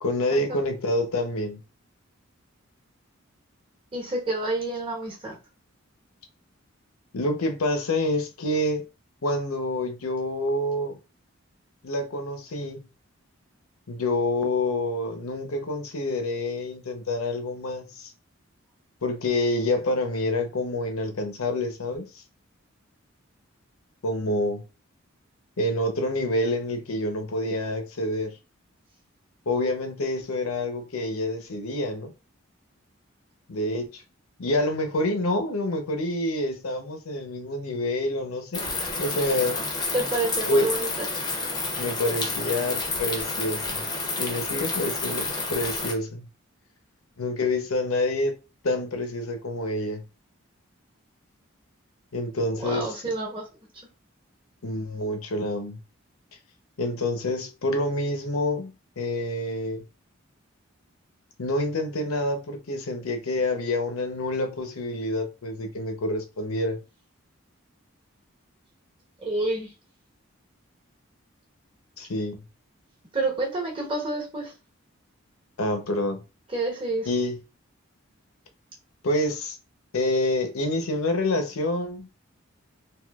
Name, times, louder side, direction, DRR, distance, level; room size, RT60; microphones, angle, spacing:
voice 1, 0.0-1.6 7.1-8.8 9.2-11.0 11.8-12.9 13.9-18.1 19.0-22.2 24.0-24.6 25.6-28.3 29.5-32.1 33.5-34.0 34.4-38.6 39.0-39.6 40.5-40.8 41.8-43.8 44.2-46.3 47.2-48.3 48.6-50.0 52.1-52.9 54.6-55.8 56.8-59.9 61.4-66.8 72.0-72.4 75.6-76.2 77.1-77.4 79.0-79.6 79.9-82.1, left 1 dB, 90° left, 0.7 m, -27 dB
voice 2, 3.9-5.4 39.9-40.9 52.5-53.4 69.2-69.7 73.1-74.5 76.5-77.1, right 2 dB, 25° right, 1.0 m, -28 dB
sound 1, 38.5-45.9, left 3 dB, 20° left, 0.6 m, -30 dB
3.6 x 2.8 x 2.3 m
head